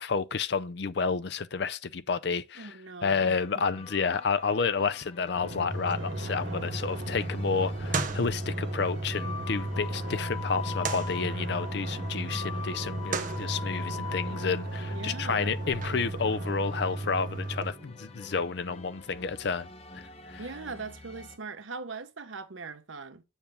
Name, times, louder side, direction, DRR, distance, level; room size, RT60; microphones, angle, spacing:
voice 1, 0.0-2.7 3.0-19.7 19.9-20.0 20.3-20.4, left 5 dB, 60° left, 0.5 m, -30 dB
voice 2, 2.6-3.4 14.9-15.5 20.4-23.2, right 4 dB, 90° right, 0.9 m, -40 dB
sound 1, 3.1-21.4, left 5 dB, 30° left, 1.0 m, -44 dB
Drum, 5.3-18.4, equal, 70° right, 1.9 m, -41 dB
sound 2, 5.7-17.7, right 2 dB, 45° right, 1.0 m, -35 dB
7.2 x 6.9 x 3.5 m
head